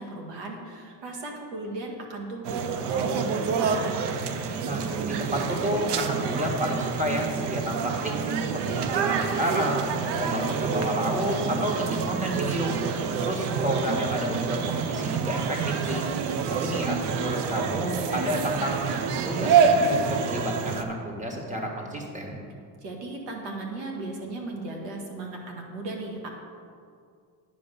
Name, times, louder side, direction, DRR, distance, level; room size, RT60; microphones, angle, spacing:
voice 1, 0.0-4.0 22.8-26.3, right 2 dB, 90° right, 1 dB, 1.9 m, -36 dB
sound 1, 2.4-20.8, right 6 dB, 70° right, 0.8 m, -27 dB
voice 2, 4.6-8.2 8.5-9.9 10.2-12.7 13.2-16.0 16.6-22.4, equal, 15° right, 1 dB, 1.6 m, -30 dB
9.8 x 5.3 x 6.8 m, 2.2 s
cardioid pair, 120°, 42 cm